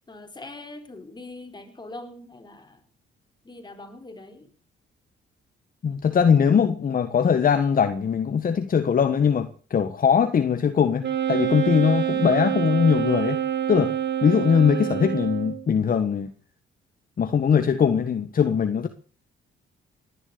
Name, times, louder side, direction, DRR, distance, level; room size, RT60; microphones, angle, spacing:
voice 1, 0.1-2.8 3.4-4.5, left 2 dB, 20° left, 6 dB, 4.3 m, -42 dB
voice 2, 5.8-13.4 13.7-13.9 14.2-16.3 17.2-18.9, left 7 dB, 45° left, 9 dB, 1.5 m, -21 dB
Wind instrument woodwind instrument, 11.0-15.7, right 11 dB, 60° right, 2.9 m, -26 dB
19.0 x 11.0 x 6.9 m, 0.40 s
cardioid pair, 90°, 20 cm